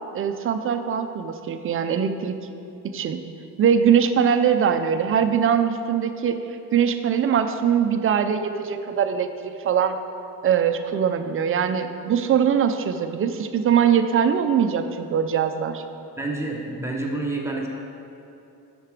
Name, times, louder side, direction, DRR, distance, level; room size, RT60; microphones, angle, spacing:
voice 1, 0.1-2.3 2.8-3.2 3.6-10.0 10.4-15.8, right 8 dB, 35° right, 8 dB, 0.4 m, -22 dB
voice 2, 16.2-17.7, right 2 dB, 5° right, -2 dB, 1.0 m, -28 dB
8.1 x 5.9 x 6.0 m, 2.8 s
cardioid pair, 145°, 39 cm